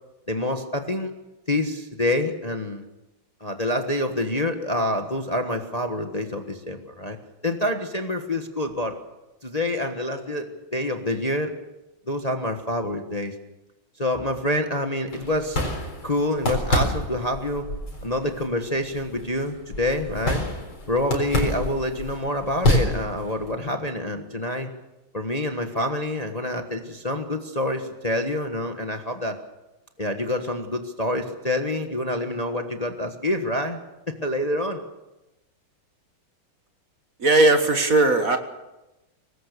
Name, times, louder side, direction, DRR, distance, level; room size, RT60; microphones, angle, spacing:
voice 1, 0.3-1.1 1.5-2.8 3.4-7.2 7.4-9.0 9.4-11.5 12.1-13.3 14.0-15.6 16.0-17.7 18.0-20.4 20.9-24.7 25.1-29.4 30.0-33.8 34.2-34.8, left 1 dB, 20° left, 5 dB, 1.3 m, -27 dB
sound 1, 15.1-23.5, left 1 dB, 70° left, 5.0 m, -28 dB
voice 2, 37.2-38.4, right 2 dB, 45° right, 6 dB, 1.9 m, -18 dB
24.0 x 19.5 x 6.9 m, 1.0 s
omnidirectional pair, 2.2 m